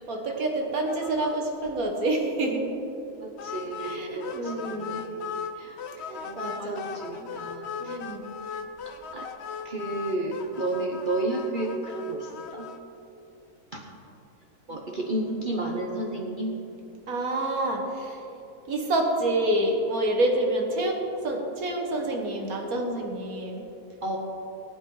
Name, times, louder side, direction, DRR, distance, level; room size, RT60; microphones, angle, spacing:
voice 1, 0.1-2.6 3.8-5.0 6.0-6.8 7.2-7.3 7.8-8.3 17.1-18.3 18.7-23.7, right 1 dB, 80° right, 1 dB, 1.9 m, -28 dB
sound 1, 0.9-1.4 1.7-1.8 2.1-2.2 3.4-5.5 5.8-12.8, left 6 dB, 60° left, 0.8 m, -38 dB
voice 2, 3.2-5.8 6.1-8.0 9.1-9.3 9.6-12.7 13.7-13.9 14.7-16.6 24.0-24.2, right 2 dB, 40° right, -1 dB, 1.0 m, -32 dB
19.5 x 9.0 x 3.9 m, 2.9 s
omnidirectional pair, 1.5 m